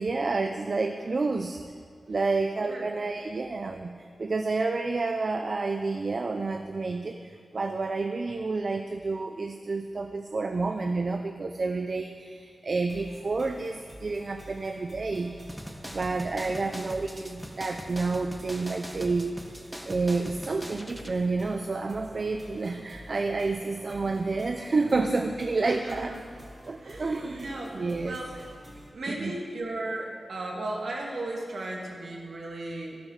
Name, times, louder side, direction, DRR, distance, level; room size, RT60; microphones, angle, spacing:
voice 1, 0.0-1.6 2.1-15.3 15.9-26.1 26.7-27.5 27.7-28.2 29.1-29.3, right 3 dB, 55° right, 6 dB, 0.7 m, -29 dB
sound 1, 12.9-28.9, equal, 30° right, 3.0 m, -48 dB
sound 2, 15.5-21.1, equal, 5° right, 1.3 m, -41 dB
voice 2, 25.6-26.2 26.8-28.4 28.9-33.0, right 2 dB, 70° right, -1 dB, 2.4 m, -36 dB
12.0 x 11.5 x 5.7 m, 2.1 s
cardioid pair, 60°, 0 cm